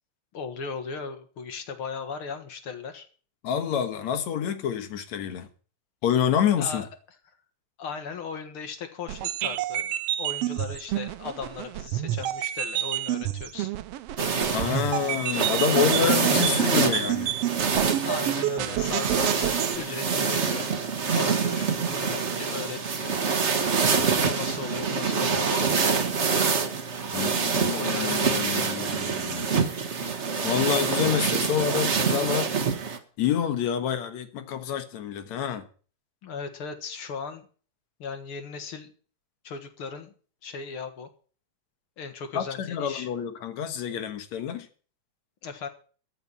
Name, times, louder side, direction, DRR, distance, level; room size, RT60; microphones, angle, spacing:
voice 1, 0.3-3.1 6.6-6.9 7.8-13.7 18.0-20.7 21.1-23.2 24.2-26.0 27.7-28.8 36.2-37.5 38.0-38.9 39.4-40.1 40.4-41.1 42.0-43.1 45.4-45.7, left 5 dB, 50° left, 2.1 m, -37 dB
voice 2, 3.4-5.5 6.0-6.8 14.5-17.3 27.1-29.5 30.4-32.5 33.2-35.6 42.3-44.7, left 8 dB, 70° left, 2.5 m, -27 dB
sound 1, 9.1-19.8, right 13 dB, 75° right, 1.6 m, -29 dB
sound 2, 14.2-33.0, right 5 dB, 55° right, 0.7 m, -26 dB
14.0 x 5.8 x 9.7 m
omnidirectional pair, 3.4 m